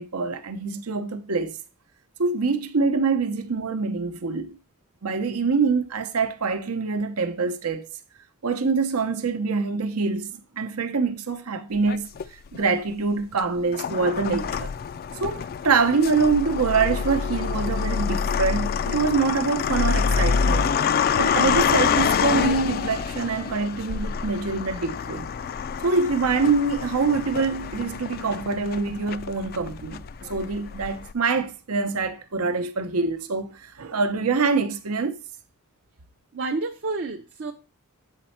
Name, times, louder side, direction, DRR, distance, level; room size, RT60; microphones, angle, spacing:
voice 1, 0.0-1.6 2.2-4.6 5.0-7.9 8.4-14.7 15.2-20.7 21.2-25.3 25.8-35.2, right 4 dB, 85° right, 0.8 m, -25 dB
sound 1, 11.9-12.6 13.3-31.1, left 6 dB, 45° left, 0.3 m, -26 dB
voice 2, 36.3-37.5, right 3 dB, 55° right, 0.6 m, -29 dB
7.5 x 4.3 x 4.2 m
head